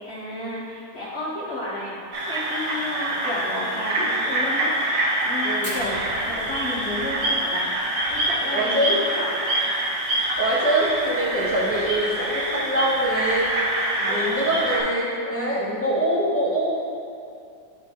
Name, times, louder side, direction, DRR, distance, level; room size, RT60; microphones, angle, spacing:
voice 1, 0.1-2.0 2.3-4.7 5.2-7.7 8.1-8.9 9.1-9.4 11.3-11.6 14.0-14.5 15.3-15.7, left 1 dB, 45° left, -6 dB, 0.9 m, -32 dB
sound 1, 2.1-14.8, right 1 dB, 85° right, 1.8 m, -26 dB
voice 2, 5.4-5.8 8.5-9.1 10.4-13.5 14.0-16.7, right 1 dB, 20° left, -7 dB, 0.3 m, -24 dB
Fire, 5.6-10.1 10.4-10.5 10.7-10.8 11.2-11.6 12.2-12.3 13.3-13.5, equal, 10° right, 1.2 m, -41 dB
10.0 x 3.7 x 2.9 m, 2.5 s
omnidirectional pair, 1.9 m